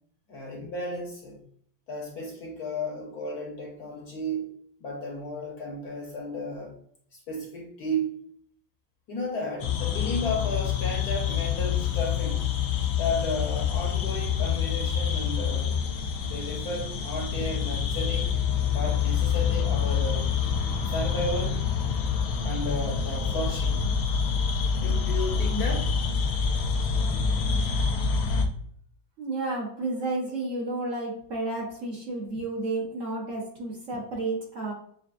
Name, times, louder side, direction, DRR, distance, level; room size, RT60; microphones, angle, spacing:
voice 1, 0.3-1.4 1.9-4.5 4.8-6.7 7.1-8.2 9.1-12.5 13.0-15.9 16.2-18.3 18.7-20.4 20.9-21.6 22.4-24.0 24.8-25.9, left 1 dB, 60° left, -1 dB, 1.2 m, -33 dB
sound 1, 9.6-28.4, left 6 dB, 85° left, 0.7 m, -27 dB
voice 2, 29.2-34.7, right 2 dB, 45° right, -4 dB, 1.3 m, -31 dB
6.8 x 2.4 x 2.4 m, 0.65 s
omnidirectional pair, 2.1 m